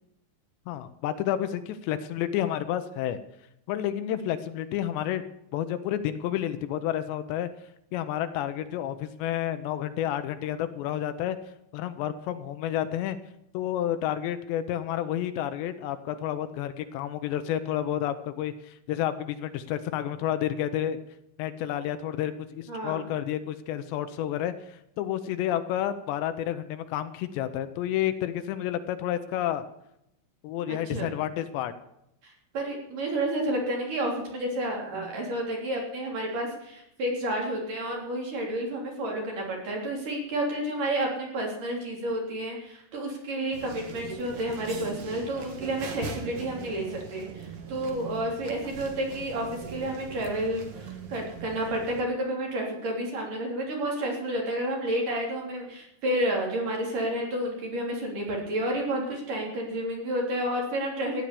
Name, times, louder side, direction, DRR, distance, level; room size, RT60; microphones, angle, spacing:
voice 1, 0.7-3.2 3.7-5.2 5.5-7.5 7.9-11.4 11.7-13.2 13.5-21.0 21.4-29.7 30.4-31.7, left 11 dB, 80° left, 10 dB, 2.9 m, -30 dB
voice 2, 22.7-23.1 30.7-31.1 32.2-61.2, right 1 dB, 50° right, -1 dB, 4.6 m, -30 dB
sound 1, 43.5-52.0, right 5 dB, 75° right, 1.3 m, -41 dB
15.0 x 10.5 x 6.8 m, 0.79 s
omnidirectional pair, 5.2 m